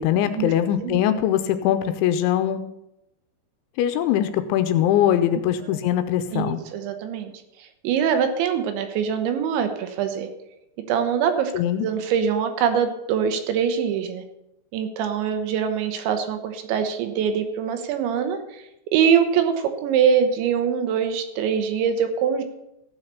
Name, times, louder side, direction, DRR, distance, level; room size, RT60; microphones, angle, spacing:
voice 1, 0.0-2.6 3.8-6.6 11.5-11.9, left 11 dB, 85° left, 10 dB, 2.9 m, -22 dB
voice 2, 6.3-7.3 7.6-10.3 10.9-11.5 11.8-14.2 14.7-18.7 18.9-22.4, right 7 dB, 75° right, 7 dB, 3.1 m, -23 dB
15.5 x 5.7 x 6.7 m, 0.89 s
omnidirectional pair, 5.5 m